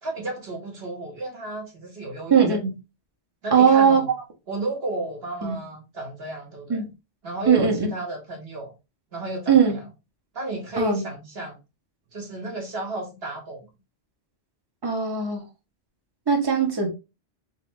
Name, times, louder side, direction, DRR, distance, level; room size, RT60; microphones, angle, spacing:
voice 1, 0.0-2.6 3.4-4.1 4.5-6.8 7.2-8.7 9.1-9.8 10.3-11.6 12.1-13.7, right 1 dB, 55° right, 1.7 m, -33 dB
voice 2, 2.3-2.7 3.5-4.0 5.4-5.6 6.7-6.9 7.5-7.9 9.5-9.8 10.8-11.0 14.8-15.4 16.3-16.9, right 6 dB, 20° right, 0.9 m, -19 dB
3.6 x 3.6 x 3.1 m
omnidirectional pair, 1.2 m